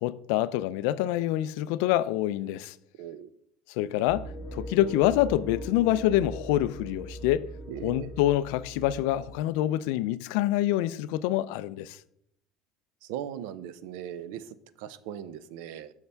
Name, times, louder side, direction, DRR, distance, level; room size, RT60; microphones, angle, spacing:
voice 1, 0.0-2.7 3.7-7.5 7.8-12.0, left 14 dB, 80° left, 0.3 m, -26 dB
voice 2, 3.0-3.3 7.7-8.1 13.0-15.9, right 10 dB, 80° right, 0.5 m, -39 dB
sound 1, 4.1-9.4, equal, 25° left, 1.0 m, -40 dB
6.8 x 6.6 x 3.4 m
cardioid pair, 175°, 0 cm